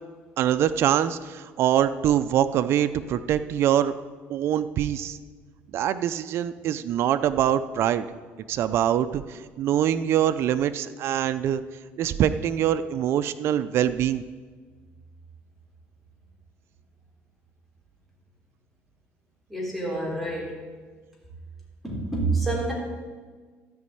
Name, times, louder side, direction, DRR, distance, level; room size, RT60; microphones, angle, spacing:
voice 1, 0.4-3.9 4.3-5.2 5.7-8.1 8.5-11.6 12.0-14.2, right 10 dB, 55° right, 11 dB, 0.5 m, -24 dB
voice 2, 19.5-20.5 21.8-22.7, right 2 dB, ahead, -5 dB, 3.5 m, -27 dB
13.0 x 5.2 x 8.5 m, 1.5 s
cardioid pair, 125°, 5 cm